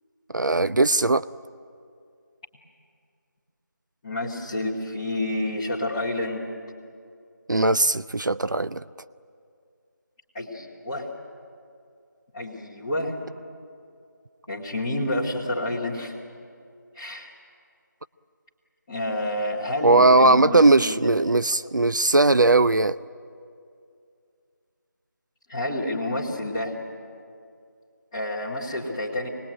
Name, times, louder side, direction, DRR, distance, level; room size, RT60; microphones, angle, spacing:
voice 1, 0.3-1.3 7.5-8.8 19.8-23.0, right 2 dB, 75° right, 14 dB, 0.6 m, -19 dB
voice 2, 4.0-6.5 10.3-11.1 12.3-13.1 14.5-16.1 16.9-17.3 18.9-21.3 25.5-26.7 28.1-29.3, left 1 dB, 15° left, -11 dB, 2.1 m, -29 dB
26.0 x 21.0 x 9.1 m, 2.4 s
figure-of-eight pair, 170°, 10 cm